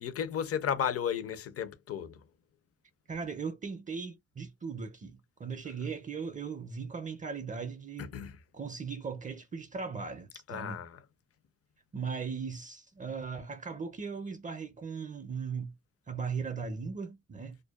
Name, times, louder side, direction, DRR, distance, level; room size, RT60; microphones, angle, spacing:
voice 1, 0.0-2.2 8.0-8.4 10.5-11.0, left 8 dB, 50° left, 0.6 m, -34 dB
voice 2, 3.1-8.1 8.5-10.8 11.9-15.7 16.1-17.6, right 5 dB, 25° right, 0.5 m, -38 dB
2.5 x 2.2 x 2.2 m
cardioid pair, 90°, 30 cm